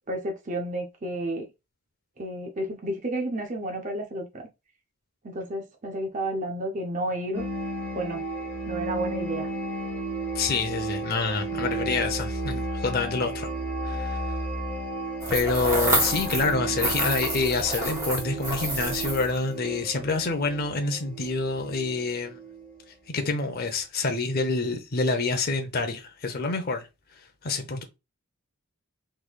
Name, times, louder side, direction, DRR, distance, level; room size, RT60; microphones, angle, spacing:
voice 1, 0.1-1.5 2.2-4.5 5.2-7.4 7.9-8.2 8.7-9.5, right 1 dB, 35° right, 0.6 m, -31 dB
sound 1, 7.3-22.8, right 2 dB, 5° left, 1.8 m, -33 dB
voice 2, 10.3-13.5 13.8-14.2 15.3-22.4 23.1-26.9 27.4-27.8, left 3 dB, 45° left, 0.6 m, -27 dB
sound 2, 15.2-16.5 16.8-19.4, right 1 dB, 15° right, 1.0 m, -28 dB
3.7 x 3.2 x 2.3 m
head